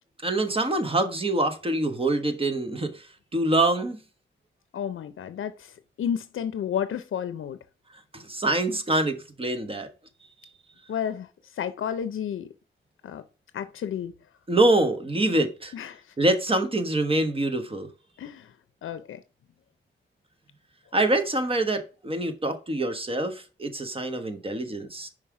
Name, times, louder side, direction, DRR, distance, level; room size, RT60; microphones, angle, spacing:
voice 1, 0.2-4.0 8.1-9.9 14.5-15.7 16.2-17.9 20.9-25.1, right 2 dB, 25° right, 1.2 m, -25 dB
voice 2, 4.7-7.6 10.9-11.3 11.6-12.5 13.0-13.2 13.5-14.1 15.7-16.0 18.2-18.5 18.8-19.2, left 8 dB, 85° left, 0.5 m, -31 dB
5.5 x 4.9 x 4.8 m
wide cardioid pair, 105°, 20 cm